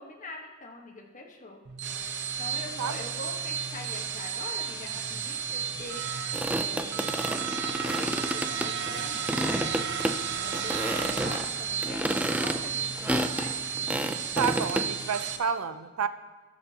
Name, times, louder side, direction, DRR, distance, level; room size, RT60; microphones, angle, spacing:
voice 1, 0.0-1.6 2.4-6.0 6.6-9.7 10.4-12.0 12.3-13.6, left 2 dB, 35° left, 1 dB, 1.2 m, -43 dB
sound 1, 1.6-15.4, right 7 dB, 55° right, 0.8 m, -33 dB
sound 2, 6.3-9.0 9.3-10.2 10.5-11.5 11.8-14.9, right 1 dB, 5° right, 0.4 m, -30 dB
voice 2, 14.4-16.1, right 6 dB, 85° right, 11 dB, 0.5 m, -29 dB
19.0 x 6.9 x 2.8 m, 1.3 s
head